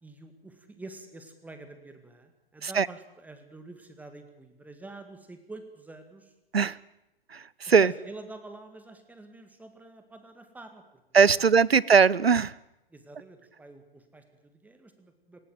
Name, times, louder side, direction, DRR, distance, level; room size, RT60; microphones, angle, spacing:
voice 1, 0.0-6.3 7.7-10.8 11.4-11.8 12.9-15.4, right 2 dB, 5° right, 7 dB, 1.9 m, -47 dB
voice 2, 7.3-7.9 11.1-12.5, right 6 dB, 85° right, 23 dB, 0.7 m, -20 dB
19.0 x 16.5 x 9.3 m, 0.92 s
figure-of-eight pair, 120°, 30 cm